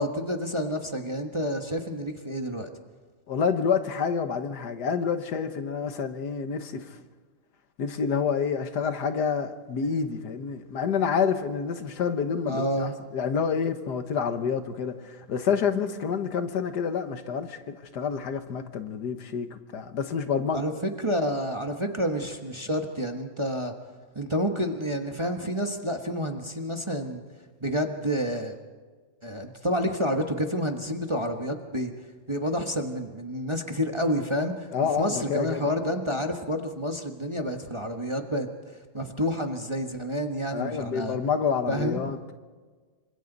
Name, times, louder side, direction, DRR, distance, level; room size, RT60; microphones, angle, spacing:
voice 1, 0.0-2.7 12.5-12.9 20.5-23.7 24.1-27.2 27.6-28.6 29.2-31.9 32.3-34.7 35.0-41.2 41.7-42.0, equal, 20° right, 1.1 m, -29 dB
voice 2, 3.3-6.9 7.8-20.6 34.7-35.6 40.5-42.3, left 6 dB, 60° left, 1.7 m, -28 dB
27.0 x 25.5 x 4.0 m
omnidirectional pair, 2.1 m